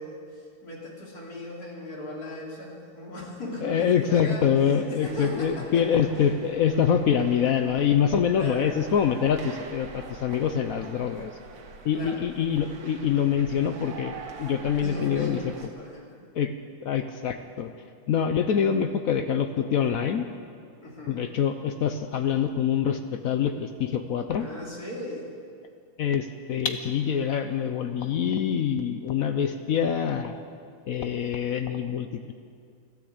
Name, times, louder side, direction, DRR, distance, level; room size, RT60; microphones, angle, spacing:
voice 1, 0.0-6.1 8.3-8.7 11.9-12.2 14.8-16.1 20.8-21.2 24.4-25.3, left 1 dB, 50° left, -4 dB, 3.4 m, -38 dB
voice 2, 3.6-11.3 11.8-14.1 14.4-15.4 16.3-16.5 16.8-17.7 18.1-20.3 21.1-24.5 26.0-30.3 30.9-32.3, left 8 dB, 70° left, 7 dB, 0.8 m, -25 dB
sound 1, 5.0-15.7, right 4 dB, 80° right, 2.0 m, -45 dB
13.5 x 12.5 x 8.1 m, 2.3 s
omnidirectional pair, 2.1 m